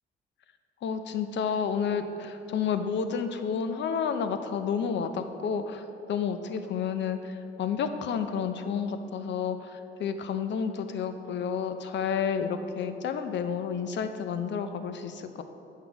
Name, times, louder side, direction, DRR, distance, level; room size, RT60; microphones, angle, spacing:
voice 1, 0.8-15.4, left 6 dB, 65° left, 9 dB, 0.6 m, -30 dB
7.9 x 5.6 x 4.7 m, 2.8 s
cardioid pair, 90°, 20 cm